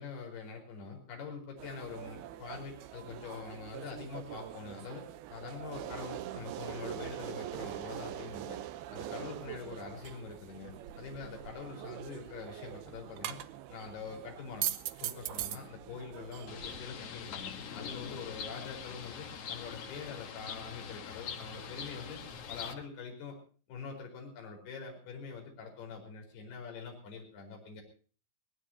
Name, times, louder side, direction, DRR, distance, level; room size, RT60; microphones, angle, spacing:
voice 1, 0.0-8.6 8.9-13.4 13.7-14.7 15.0-22.2 22.5-23.4 23.7-27.8, left 5 dB, 60° left, 1 dB, 6.5 m, -44 dB
sound 1, 1.6-16.9, right 13 dB, 75° right, 2.5 m, -42 dB
Bird, 16.5-22.7, left 7 dB, 80° left, 1.3 m, -43 dB
22.5 x 18.5 x 2.9 m, 0.40 s
omnidirectional pair, 5.1 m